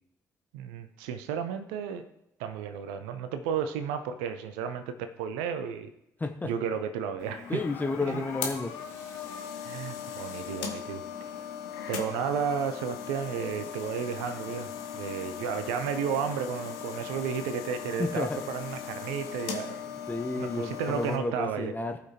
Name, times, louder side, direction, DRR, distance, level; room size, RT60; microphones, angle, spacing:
voice 1, 0.5-2.0 2.4-5.9 6.4-7.6 8.1-8.2 9.6-11.0 11.9-19.8 20.4-21.7, right 7 dB, 65° right, 9 dB, 0.6 m, -33 dB
voice 2, 6.2-6.5 7.5-8.8 18.0-18.4 20.1-22.0, left 3 dB, 20° left, 6 dB, 0.8 m, -31 dB
sound 1, 7.2-21.2, left 8 dB, 70° left, 1.2 m, -39 dB
17.5 x 5.8 x 2.8 m, 0.82 s
figure-of-eight pair, 45°, 9 cm